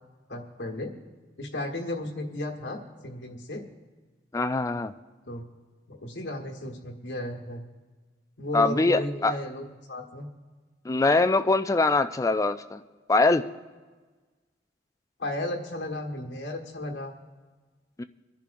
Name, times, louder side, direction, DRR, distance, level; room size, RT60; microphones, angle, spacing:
voice 1, 0.3-0.9 1.4-3.6 5.2-5.4 5.9-7.6 8.4-10.3 15.2-17.2, left 1 dB, 80° left, 2 dB, 1.5 m, -34 dB
voice 2, 4.3-4.9 8.5-9.4 10.8-12.8 13.1-13.5 18.0-18.1, left 3 dB, 15° left, 11 dB, 0.3 m, -23 dB
25.5 x 10.5 x 2.6 m, 1.3 s
head